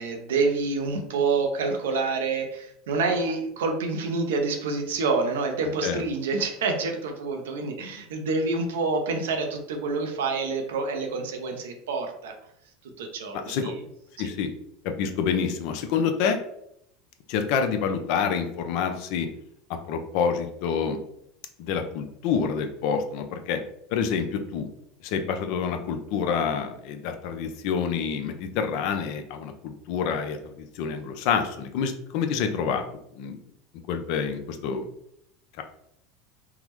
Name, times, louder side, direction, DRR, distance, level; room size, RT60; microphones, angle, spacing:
voice 1, 0.0-12.3 13.0-13.8 14.2-14.3, right 4 dB, 85° right, 4 dB, 0.5 m, -27 dB
voice 2, 14.2-14.5 14.8-16.4 17.3-19.3 19.7-21.0 21.6-23.6 23.9-24.7 25.0-32.8 33.1-33.4 33.9-34.9, left 6 dB, 65° left, 7 dB, 0.4 m, -27 dB
3.5 x 2.0 x 3.0 m, 0.76 s
supercardioid pair, 100°, 0 cm